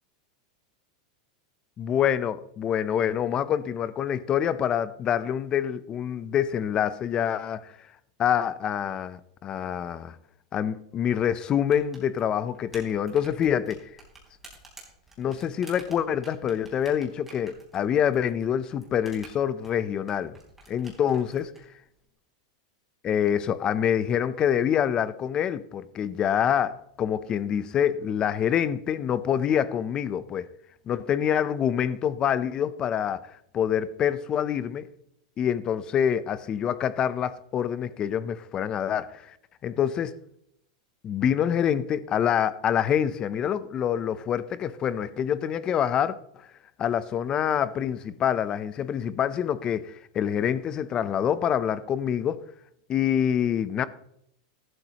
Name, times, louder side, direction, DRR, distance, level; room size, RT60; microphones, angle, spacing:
voice 1, 1.8-7.7 8.2-10.2 10.5-13.8 15.2-20.3 20.7-21.4 23.0-30.5 30.9-33.2 33.5-34.9 35.4-39.3 39.6-40.1 41.0-46.2 46.8-52.4 52.9-53.9, left 9 dB, 25° left, 0.6 m, -26 dB
sound 1, 11.6-21.6, right 3 dB, 5° right, 4.0 m, -51 dB
14.5 x 12.5 x 3.0 m
supercardioid pair, 150°, 3 cm